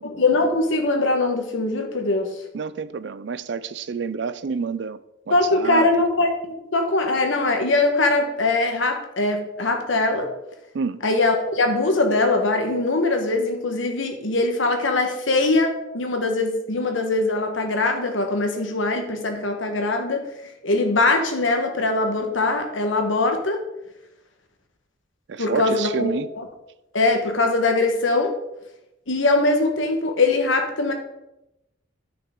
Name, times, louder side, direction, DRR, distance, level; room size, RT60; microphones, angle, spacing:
voice 1, 0.0-2.3 5.3-10.3 11.0-20.2 20.6-23.6 25.4-26.1 26.4-26.5 26.9-28.3 29.1-30.9, left 2 dB, 75° left, 1.3 m, -22 dB
voice 2, 2.5-5.0 5.3-5.9 10.7-11.0 25.3-26.3, right 5 dB, 60° right, 0.4 m, -28 dB
10.0 x 6.0 x 3.8 m
head